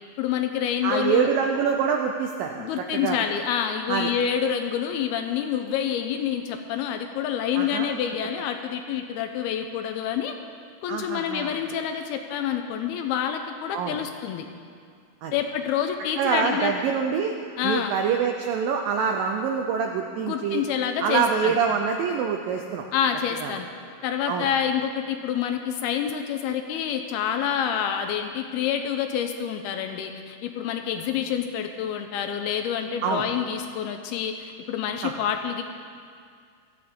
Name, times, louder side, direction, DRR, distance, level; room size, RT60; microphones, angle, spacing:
voice 1, 0.2-1.3 2.6-10.4 10.8-14.5 15.3-16.7 17.6-18.0 20.2-21.6 22.9-23.7 24.0-35.6, left 8 dB, 85° left, 6 dB, 2.4 m, -27 dB
voice 2, 0.8-3.2 3.9-4.1 7.6-8.0 10.9-11.5 13.7-14.0 15.2-15.4 16.2-17.3 17.6-20.6 21.0-22.9 23.4-23.5 24.3-24.5 33.0-33.2 35.0-35.1, right 6 dB, 80° right, 3 dB, 2.0 m, -25 dB
18.0 x 13.5 x 3.7 m, 2.2 s
omnidirectional pair, 4.8 m